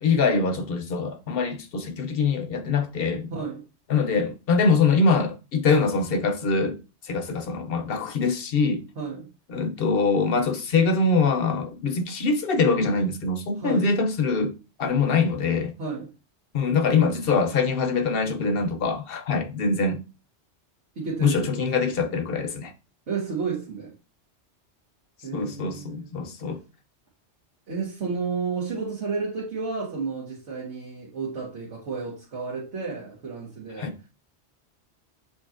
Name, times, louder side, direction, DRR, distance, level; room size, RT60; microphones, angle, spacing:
voice 1, 0.0-3.3 3.9-6.8 7.0-8.8 9.5-14.5 14.8-15.7 16.5-20.0 21.2-22.7 25.3-26.6 33.8-33.9, left 4 dB, 60° left, 0.8 m, -23 dB
voice 2, 3.3-3.6 8.9-9.3 13.5-13.9 15.8-16.1 20.9-22.0 23.1-23.9 25.2-26.1 27.7-34.1, right 5 dB, 85° right, 1.5 m, -32 dB
6.8 x 2.7 x 2.4 m
omnidirectional pair, 1.2 m